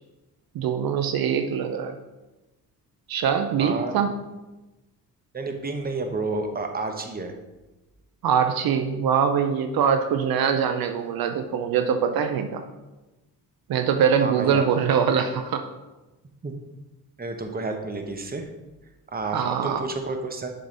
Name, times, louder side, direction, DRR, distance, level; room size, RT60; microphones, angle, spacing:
voice 1, 0.5-1.9 3.1-4.1 8.2-12.6 13.7-15.6 19.3-19.8, right 7 dB, 70° right, 6 dB, 0.6 m, -23 dB
voice 2, 3.6-4.1 5.3-7.3 14.2-14.7 16.4-16.5 17.2-18.5 19.1-20.5, right 3 dB, 25° right, 4 dB, 0.9 m, -30 dB
7.2 x 3.9 x 3.9 m, 1.1 s
cardioid pair, 75°, 37 cm